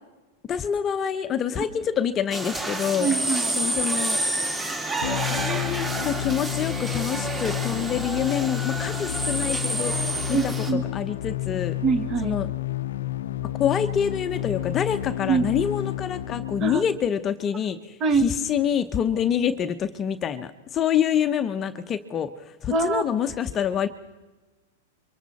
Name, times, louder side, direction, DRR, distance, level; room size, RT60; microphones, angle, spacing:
voice 1, 0.5-3.1 3.6-4.2 5.3-9.9 10.3-11.7 12.2-12.5 13.6-22.3 22.6-23.9, left 8 dB, 25° left, 9 dB, 0.9 m, -26 dB
sound 1, 2.3-10.7, right 2 dB, 10° right, 2.6 m, -29 dB
voice 2, 3.0-3.6 10.3-10.8 11.8-12.4 15.3-15.5 16.6-16.8 18.0-18.3 22.7-23.0, right 4 dB, 30° right, 8 dB, 2.0 m, -24 dB
sound 2, 5.0-17.0, left 14 dB, 80° left, 0.7 m, -30 dB
28.0 x 24.0 x 4.2 m, 1.2 s
supercardioid pair, 140°, 0 cm